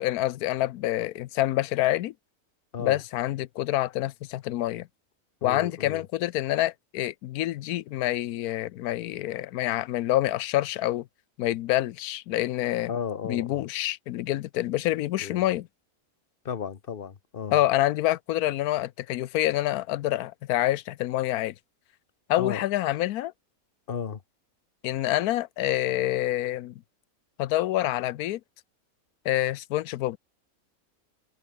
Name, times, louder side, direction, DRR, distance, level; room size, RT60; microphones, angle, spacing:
voice 1, 0.0-2.1 2.8-4.9 5.4-11.1 11.4-12.9 13.2-15.7 17.5-21.5 22.3-23.3 24.8-26.7 27.4-28.4 29.2-30.2, left 14 dB, 90° left, 1.1 m, -27 dB
voice 2, 5.4-6.0 12.9-13.6 15.2-15.4 16.4-17.6 22.4-22.6 23.9-24.2, left 7 dB, 40° left, 1.2 m, -34 dB
omnidirectional pair, 1.5 m